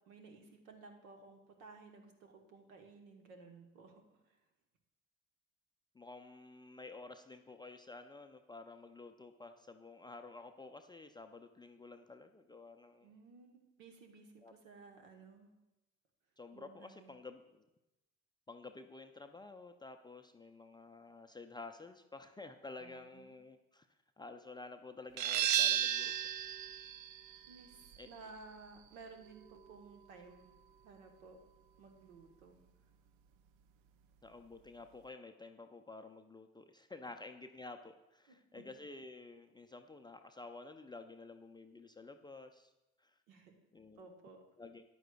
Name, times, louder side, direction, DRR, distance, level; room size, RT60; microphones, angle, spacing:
voice 1, 0.0-4.4 13.0-15.5 16.5-17.1 22.8-23.4 27.5-30.5 30.8-31.4 31.8-32.6 38.3-38.6 43.3-43.5 44.0-44.4, right 4 dB, 70° right, 4 dB, 1.3 m, -56 dB
voice 2, 5.9-13.1 14.4-14.5 16.4-17.6 18.5-23.9 24.2-26.1 28.0-28.1 34.2-42.7 43.0-43.1 43.7-44.1 44.6-44.8, left 3 dB, 10° left, 5 dB, 0.4 m, -51 dB
sound 1, 25.2-30.6, right 11 dB, 55° right, 0.6 m, -36 dB
13.5 x 9.8 x 2.3 m, 0.98 s
figure-of-eight pair, 55°, 40 cm